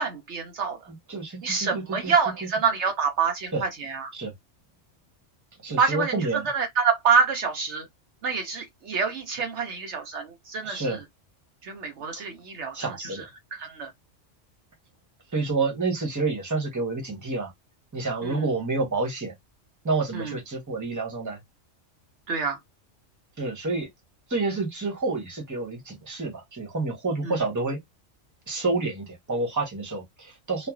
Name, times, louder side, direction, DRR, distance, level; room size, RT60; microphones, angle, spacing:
voice 1, 0.0-0.8 1.4-4.1 5.8-6.2 6.5-7.9 8.2-11.0 11.6-12.9 13.6-13.9 18.2-18.5 20.1-20.3 22.3-22.6 27.2-27.3, right 5 dB, 65° right, 0.9 m, -26 dB
voice 2, 0.9-2.1 3.5-3.6 4.1-4.3 5.6-6.5 10.6-11.0 12.1-12.2 12.7-13.3 15.3-17.5 17.9-19.3 19.8-21.4 23.4-23.9 24.3-27.8 28.5-30.7, right 3 dB, 15° right, 1.0 m, -29 dB
3.1 x 2.2 x 2.3 m
omnidirectional pair, 1.3 m